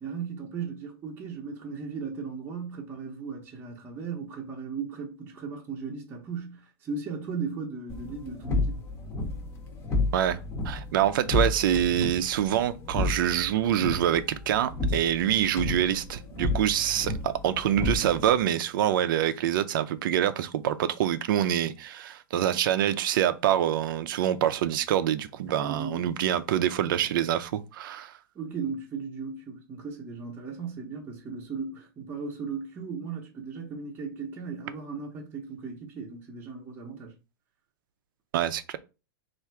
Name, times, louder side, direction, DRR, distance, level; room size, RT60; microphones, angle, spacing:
voice 1, 0.0-8.8 25.6-26.1 28.3-37.1, right 5 dB, 15° right, 0.7 m, -36 dB
sound 1, 7.9-18.5, left 3 dB, 20° left, 0.7 m, -32 dB
voice 2, 10.1-28.1 38.3-38.8, right 11 dB, 60° right, 0.5 m, -26 dB
3.5 x 2.5 x 4.4 m
supercardioid pair, 160°, 12 cm